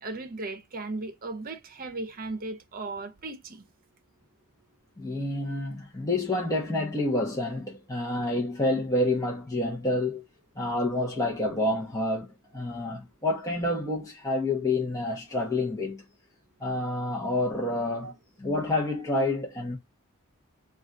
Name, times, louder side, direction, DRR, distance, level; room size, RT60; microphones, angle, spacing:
voice 1, 0.0-3.7 18.0-18.1, right 2 dB, 40° right, 0.8 m, -36 dB
voice 2, 5.0-10.2 10.6-12.3 12.5-16.0 16.6-18.1 18.4-19.8, left 2 dB, 15° left, 0.9 m, -28 dB
3.9 x 2.4 x 3.8 m
head